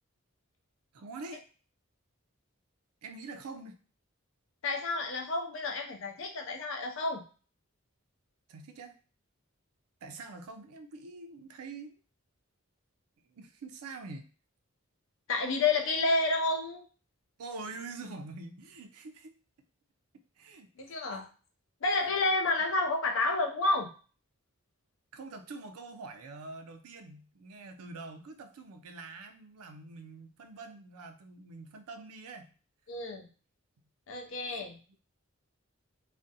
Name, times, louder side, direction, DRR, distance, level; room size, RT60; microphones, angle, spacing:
voice 1, 0.9-1.4 3.0-3.8 8.5-8.9 10.0-12.0 13.2-14.3 17.4-19.4 20.4-21.0 25.1-32.5 34.5-34.7, right 3 dB, 85° right, 7 dB, 0.4 m, -45 dB
voice 2, 4.6-7.2 15.3-16.8 20.8-21.3 21.8-23.9 32.9-33.2 34.1-34.8, left 3 dB, 60° left, 3 dB, 0.5 m, -30 dB
2.4 x 2.1 x 2.6 m, 0.38 s
head